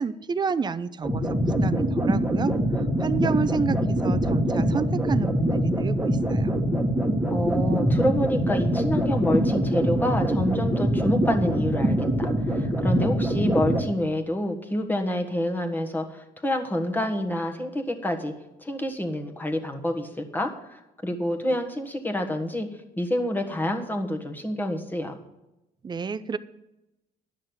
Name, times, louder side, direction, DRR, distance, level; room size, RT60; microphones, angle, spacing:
voice 1, 0.0-2.5 3.0-6.5 25.8-26.4, right 5 dB, 25° right, 13 dB, 0.5 m, -30 dB
sound 1, 1.0-13.8, equal, 5° right, 1.6 m, -24 dB
voice 2, 7.3-18.3 18.6-22.7 23.0-25.2, left 1 dB, 10° left, 3 dB, 1.4 m, -28 dB
10.5 x 6.4 x 7.8 m, 0.94 s
cardioid pair, 110°, 17 cm